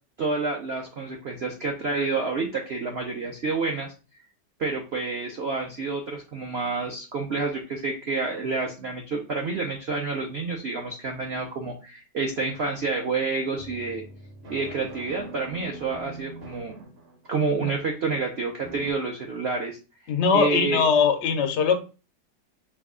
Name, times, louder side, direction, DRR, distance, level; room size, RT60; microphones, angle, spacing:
voice 1, 0.2-3.9 4.6-14.0 14.5-16.9 17.3-19.8 20.3-20.8, right 4 dB, 60° right, 1 dB, 0.6 m, -29 dB
sound 1, 13.6-17.5 18.6-18.9, right 2 dB, 45° right, 1.0 m, -43 dB
voice 2, 20.1-21.8, left 5 dB, 80° left, 6 dB, 0.6 m, -21 dB
4.7 x 2.3 x 3.6 m, 0.32 s
omnidirectional pair, 1.9 m